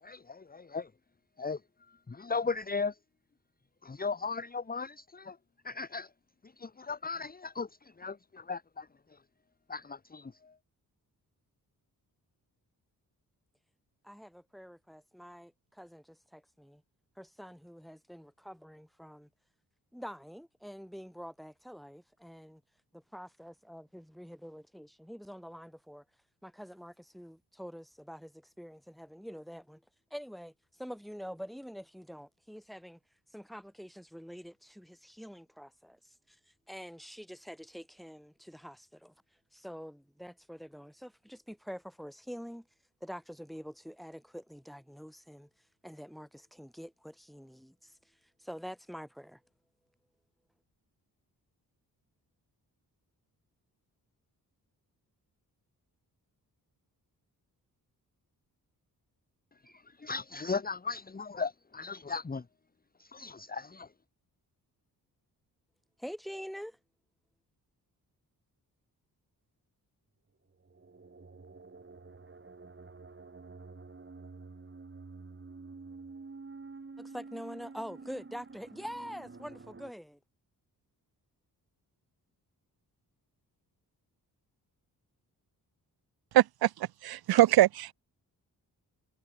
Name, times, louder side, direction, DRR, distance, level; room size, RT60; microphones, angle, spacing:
voice 1, 0.0-0.9 1.4-1.6 2.1-2.9 3.8-5.4 5.6-6.1 6.6-7.7 8.0-8.9 9.7-10.5 60.0-62.4 63.0-63.9, left 4 dB, 25° left, 1.1 m, -36 dB
voice 2, 14.0-16.8 17.2-19.3 19.9-22.6 22.9-26.0 26.4-29.8 30.1-33.0 33.3-39.1 39.5-42.7 43.0-45.5 45.8-48.1 48.4-49.4 66.0-66.8 77.0-80.2, equal, ahead, 6.8 m, -46 dB
sound 1, 70.5-79.9, right 4 dB, 30° right, 4.3 m, -49 dB
voice 3, 86.3-86.7 87.0-87.9, right 14 dB, 75° right, 0.5 m, -22 dB
cardioid pair, 85°, 38 cm